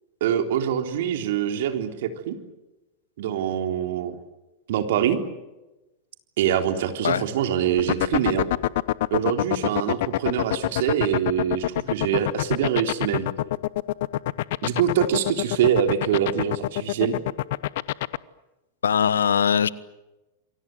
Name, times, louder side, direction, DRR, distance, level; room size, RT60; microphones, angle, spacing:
voice 1, 0.2-2.4 3.2-4.2 4.7-5.2 6.4-8.5 9.1-13.3 14.6-17.2, right 9 dB, 65° right, 6 dB, 3.7 m, -24 dB
sound 1, 7.8-18.2, left 16 dB, 60° left, 0.9 m, -24 dB
voice 2, 18.8-19.7, left 8 dB, 80° left, 19 dB, 1.1 m, -21 dB
28.5 x 23.5 x 7.9 m, 1.0 s
hypercardioid pair, 100°, 0 cm